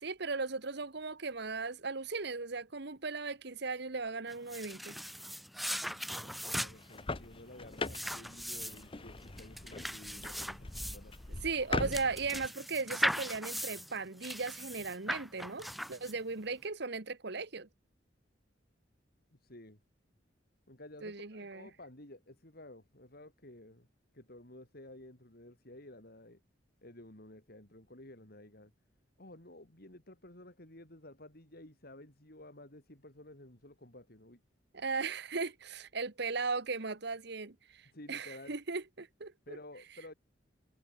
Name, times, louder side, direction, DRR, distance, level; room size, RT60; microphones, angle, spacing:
voice 1, 0.0-5.0 11.4-17.7 21.0-21.7 34.7-39.6, right 4 dB, 65° right, 1.5 m, -37 dB
sound 1, 4.3-16.4, equal, ahead, 0.5 m, -39 dB
voice 2, 5.9-11.2 19.3-19.8 20.7-23.9 24.1-26.4 26.8-28.7 29.2-34.4 37.9-38.6 39.5-40.1, left 1 dB, 55° left, 4.8 m, -53 dB
sound 2, 6.8-12.5, left 3 dB, 30° left, 1.1 m, -41 dB
head